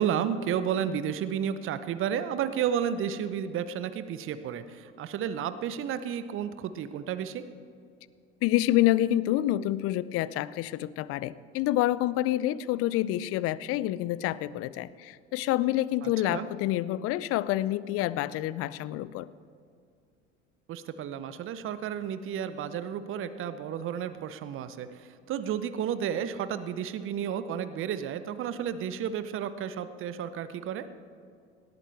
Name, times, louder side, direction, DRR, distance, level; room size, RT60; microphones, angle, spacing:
voice 1, 0.0-7.4 16.0-16.5 20.7-30.9, right 8 dB, 35° right, 13 dB, 0.8 m, -32 dB
voice 2, 8.4-19.3, left 14 dB, 40° left, 19 dB, 0.5 m, -27 dB
18.5 x 13.0 x 3.5 m, 2.3 s
figure-of-eight pair, 65°, 35 cm